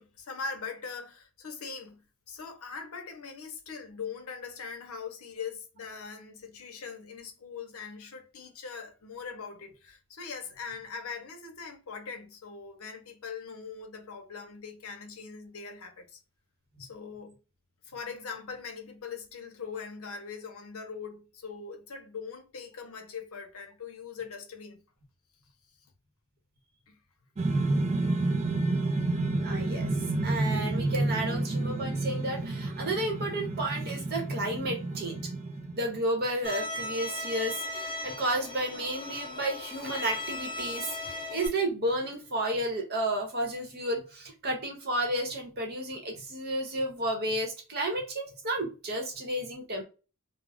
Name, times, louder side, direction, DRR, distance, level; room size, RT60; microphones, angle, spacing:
voice 1, 0.0-16.2 16.8-17.4 17.8-24.8 26.9-27.0, left 5 dB, 70° left, 0.7 m, -41 dB
sound 1, 27.4-36.0, right 2 dB, 30° right, 0.4 m, -30 dB
voice 2, 29.4-35.2 35.7-49.8, right 1 dB, 45° right, 0.8 m, -32 dB
Bowed string instrument, 36.4-41.5, left 2 dB, 25° left, 0.6 m, -37 dB
2.3 x 2.0 x 3.3 m
head